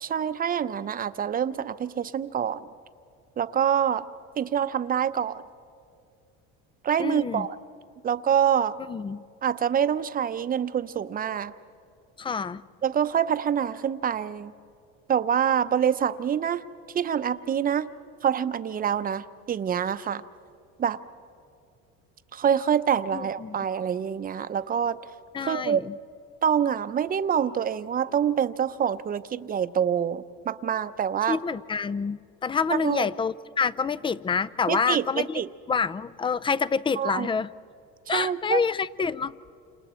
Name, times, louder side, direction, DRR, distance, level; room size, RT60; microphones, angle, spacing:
voice 1, 0.0-2.7 3.4-4.1 4.4-5.4 6.8-7.6 8.0-8.8 9.4-11.5 12.8-14.5 15.1-16.6 16.9-17.9 18.2-20.2 20.8-21.0 22.3-25.0 25.4-25.8 26.4-31.4 32.7-33.1 34.7-35.5 37.0-37.3 38.1-38.6, right 8 dB, 30° right, 12 dB, 0.7 m, -26 dB
voice 2, 7.0-7.5 8.9-9.2 12.2-12.6 23.1-23.6 25.3-25.9 31.3-35.4 35.7-37.5 38.1-39.3, left 5 dB, 15° left, 19 dB, 0.4 m, -27 dB
29.0 x 27.5 x 4.4 m, 2.5 s
supercardioid pair, 110°, 29 cm